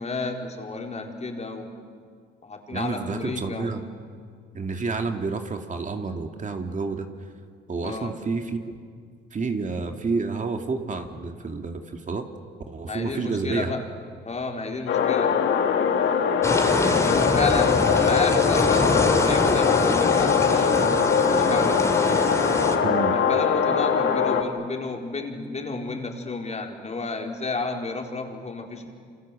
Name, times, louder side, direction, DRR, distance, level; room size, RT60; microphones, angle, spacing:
voice 1, 0.0-1.7 2.4-3.8 7.8-8.1 12.8-13.8 14.2-15.4 16.8-20.9 21.2-21.8 23.1-28.9, left 3 dB, 35° left, 2 dB, 4.2 m, -31 dB
voice 2, 2.7-3.8 4.5-7.1 7.7-8.8 9.3-12.3 12.7-13.7 22.8-23.2, right 4 dB, 40° right, 5 dB, 2.4 m, -29 dB
sound 1, 14.9-24.4, left 6 dB, 70° left, 2.6 m, -22 dB
sound 2, 16.4-22.8, left 1 dB, 15° left, 3.3 m, -25 dB
28.0 x 27.0 x 7.7 m, 2.1 s
cardioid pair, 90°, 20 cm